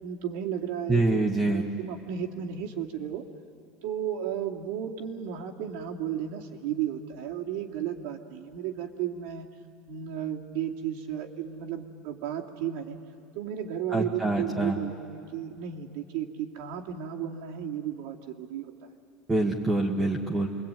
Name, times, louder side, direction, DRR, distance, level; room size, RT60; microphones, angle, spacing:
voice 1, 0.0-1.0 1.4-3.2 3.8-9.5 9.9-13.0 13.3-18.9, right 9 dB, 70° right, 1 dB, 2.6 m, -34 dB
voice 2, 0.9-1.6 13.9-14.8 19.3-20.5, right 2 dB, 10° right, 0 dB, 1.5 m, -25 dB
28.0 x 23.0 x 9.1 m, 2.4 s
cardioid pair, 175°, 0 cm